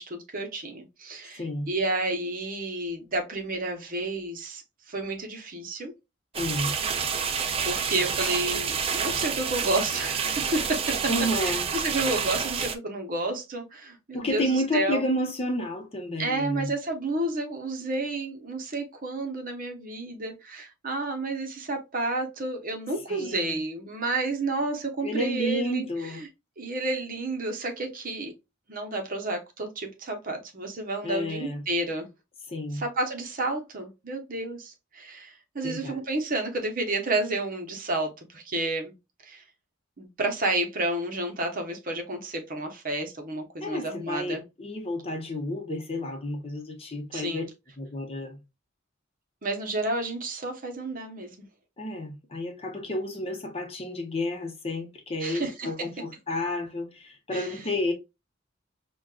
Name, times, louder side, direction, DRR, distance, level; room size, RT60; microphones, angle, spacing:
voice 1, 0.0-5.9 7.1-11.0 11.4-15.0 16.2-25.8 26.1-26.3 26.6-28.3 28.7-32.1 32.7-38.9 39.2-39.4 40.0-44.4 47.1-47.5 49.4-51.3 55.2-55.7 57.3-57.6, right 2 dB, 45° right, 0.8 m, -31 dB
voice 2, 1.3-1.7 6.3-6.7 11.1-11.7 14.1-16.7 23.1-23.6 25.0-26.2 31.0-31.6 32.5-32.9 35.6-36.0 43.6-47.4 47.8-48.4 51.8-57.9, left 1 dB, 30° left, 0.8 m, -31 dB
sound 1, 6.3-12.8, right 6 dB, 30° right, 0.4 m, -28 dB
5.1 x 2.2 x 2.3 m
head